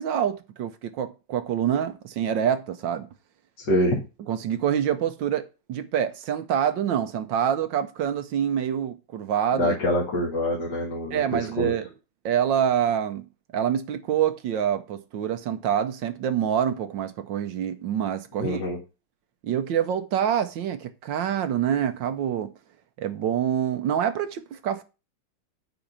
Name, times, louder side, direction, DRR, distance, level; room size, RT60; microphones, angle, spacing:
voice 1, 0.0-3.1 4.3-5.4 5.7-9.8 11.1-11.9 12.2-13.3 13.5-18.6 19.4-22.5 23.0-24.8, right 9 dB, 70° right, 1.3 m, -26 dB
voice 2, 3.6-4.0 9.6-11.7 18.4-18.8, left 1 dB, 60° left, 2.8 m, -25 dB
9.1 x 4.1 x 7.3 m
omnidirectional pair, 2.2 m